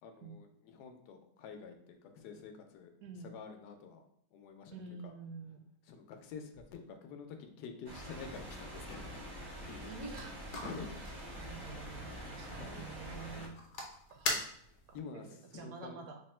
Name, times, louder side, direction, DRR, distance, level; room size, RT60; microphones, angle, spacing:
voice 1, 0.0-2.9 3.2-4.0 4.3-5.1 5.8-9.2 9.6-9.9 10.6-10.9 11.3-11.5 12.4-12.9 14.3-14.4 14.7-16.1, left 5 dB, 85° left, 5 dB, 1.2 m, -48 dB
voice 2, 3.0-3.3 4.7-5.7 9.9-10.4 10.8-11.1 11.4-13.6 14.1-14.5 14.9-15.2 15.5-16.2, right 4 dB, 70° right, 3 dB, 1.0 m, -48 dB
sound 1, 7.8-13.5, equal, 30° right, 0.4 m, -46 dB
sound 2, 9.8-15.0, left 2 dB, 65° left, 1.1 m, -43 dB
3.5 x 2.0 x 4.2 m, 0.68 s
omnidirectional pair, 1.7 m